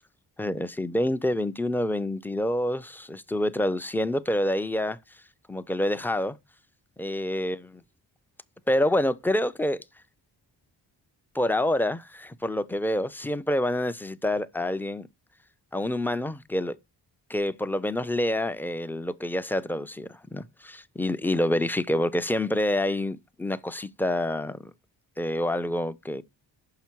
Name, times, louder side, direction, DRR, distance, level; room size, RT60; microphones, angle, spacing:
voice 1, 0.4-5.0 5.5-6.4 7.0-7.8 8.7-9.8 11.3-15.1 15.7-16.8 17.3-24.6 25.2-26.2, left 1 dB, 5° left, 0.3 m, -27 dB
5.8 x 5.7 x 4.5 m
cardioid pair, 70°, 44 cm